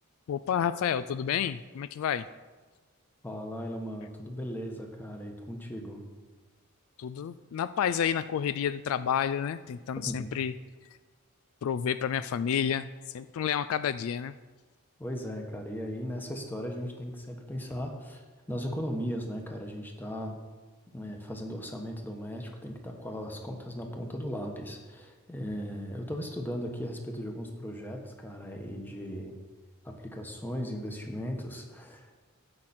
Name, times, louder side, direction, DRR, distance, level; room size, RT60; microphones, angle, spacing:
voice 1, 0.3-2.3 7.0-10.5 11.6-14.3, left 8 dB, 70° left, 14 dB, 0.3 m, -30 dB
voice 2, 3.2-6.0 10.1-10.3 15.0-18.2 18.5-20.4 20.9-29.4 29.8-32.1, equal, 10° left, 2 dB, 1.2 m, -37 dB
15.0 x 5.8 x 4.3 m, 1.3 s
head